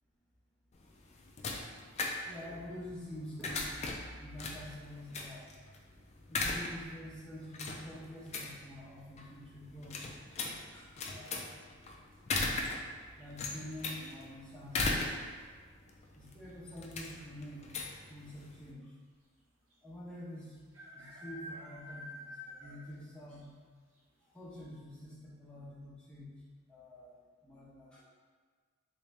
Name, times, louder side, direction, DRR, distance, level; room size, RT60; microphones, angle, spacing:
sound 1, 0.7-18.7, left 3 dB, 30° left, 0.3 m, -39 dB
voice 1, 2.2-5.4 6.3-10.0 10.7-11.6 13.2-15.4 16.1-18.9 19.8-20.5 20.9-23.6 24.3-26.4 26.7-27.2 27.4-28.0, left 1 dB, 5° left, -8 dB, 0.8 m, -47 dB
sound 2, 13.2-13.7 15.5-15.9 16.1-16.2 16.4-17.0 17.7-17.8 18.1-18.2 19.7-19.8 20.7-23.0 23.4-23.5 24.0-24.1 24.5-24.6, left 1 dB, 80° right, 0.9 m, -49 dB
3.5 x 2.7 x 3.2 m, 1.5 s
head